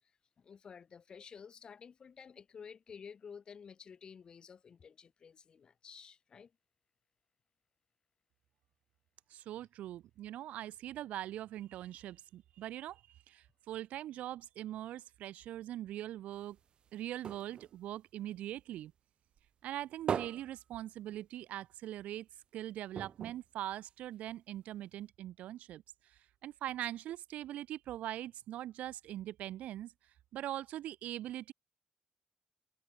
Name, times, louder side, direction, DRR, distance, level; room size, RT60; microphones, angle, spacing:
voice 1, 0.4-6.5, left 6 dB, 35° left, 3.4 m, -52 dB
voice 2, 9.3-16.6 16.9-18.9 19.6-22.3 22.5-29.9 30.3-31.5, right 13 dB, 90° right, 0.5 m, -42 dB
sound 1, 16.3-19.0 19.4-21.6 21.9-22.0 22.3-22.5 22.9-24.4 25.1-25.2, right 7 dB, 45° right, 0.8 m, -42 dB
cardioid pair, 160°, 2 cm